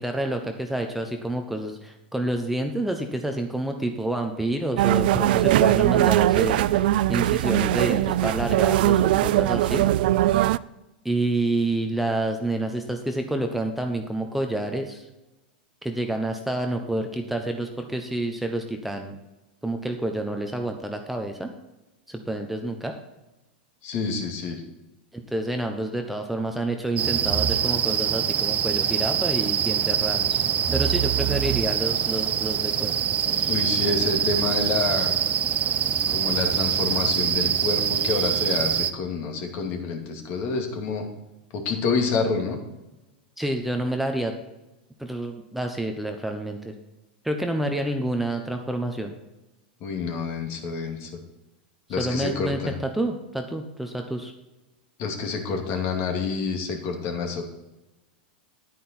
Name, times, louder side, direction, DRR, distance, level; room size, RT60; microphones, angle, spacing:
voice 1, 0.0-9.9 11.0-15.1 15.8-19.1 19.6-21.5 22.1-23.0 25.1-30.4 30.7-32.9 33.2-33.5 43.4-44.3 45.0-46.7 47.2-49.1 52.0-54.3, right 1 dB, 5° right, 4 dB, 1.0 m, -28 dB
sound 1, 4.8-10.6, right 14 dB, 65° right, 0.3 m, -20 dB
voice 2, 23.8-24.6 33.5-35.2 36.1-41.1 41.5-42.6 49.8-51.1 51.9-52.7 55.0-57.4, left 4 dB, 45° left, 3 dB, 2.4 m, -28 dB
sound 2, 27.0-38.9, right 9 dB, 30° right, 0.7 m, -24 dB
10.0 x 9.2 x 4.5 m, 1.0 s
hypercardioid pair, 115°, 5 cm